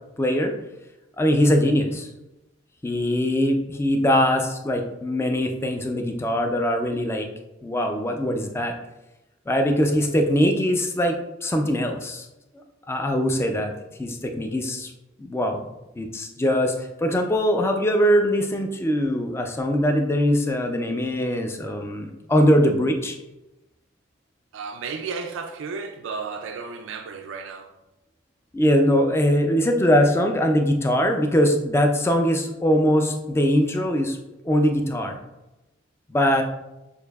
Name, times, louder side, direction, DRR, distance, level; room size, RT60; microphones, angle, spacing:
voice 1, 0.2-0.5 1.2-2.1 2.8-7.3 7.6-8.7 9.5-11.1 11.4-12.3 12.9-13.7 14.0-14.9 15.2-15.7 16.0-23.2 28.5-34.2 34.4-35.2 36.1-36.4, equal, 15° left, 0.4 m, -22 dB
voice 2, 24.5-27.7, right 5 dB, 85° right, 0.3 m, -33 dB
6.5 x 2.6 x 2.3 m
head